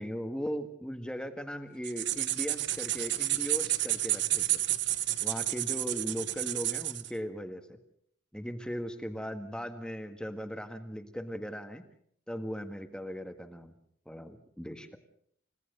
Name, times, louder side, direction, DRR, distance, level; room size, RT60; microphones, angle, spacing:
voice 1, 0.0-4.6 5.2-7.8 8.3-11.8 12.3-13.7 14.0-14.9, equal, 5° left, 6 dB, 1.6 m, -38 dB
sound 1, 1.8-7.1, right 14 dB, 55° right, 1.1 m, -31 dB
30.0 x 17.5 x 6.7 m, 0.66 s
head